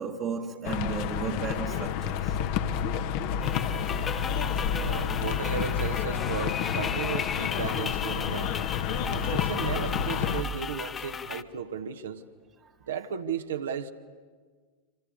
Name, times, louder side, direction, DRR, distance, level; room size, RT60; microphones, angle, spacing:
voice 1, 0.0-2.4 7.7-7.9 12.6-12.7, right 6 dB, 30° right, 1.5 m, -34 dB
sound 1, 0.6-10.4, left 8 dB, 45° left, 1.4 m, -29 dB
sound 2, 3.4-11.4, left 6 dB, 20° left, 0.8 m, -36 dB
voice 2, 4.7-8.6 9.1-12.2 12.9-13.9, right 7 dB, 65° right, 1.3 m, -35 dB
26.0 x 26.0 x 8.7 m
figure-of-eight pair, 90°, 0 cm